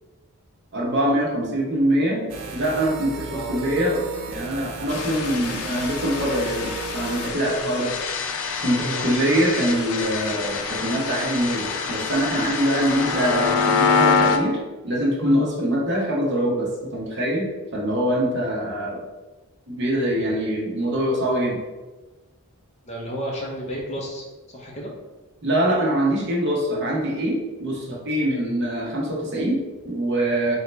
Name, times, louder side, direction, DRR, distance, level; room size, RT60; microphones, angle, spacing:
voice 1, 0.7-7.9 8.6-14.6 14.8-19.0 19.7-21.6 25.4-30.6, right 1 dB, 50° right, -3 dB, 0.9 m, -24 dB
sound 1, 2.3-7.3, right 3 dB, 65° right, 0.5 m, -35 dB
sound 2, 4.9-14.4, left 5 dB, 90° left, 0.4 m, -25 dB
voice 2, 22.9-24.3 24.5-24.9, equal, 30° left, -2 dB, 0.7 m, -32 dB
4.0 x 2.8 x 3.3 m, 1.2 s
head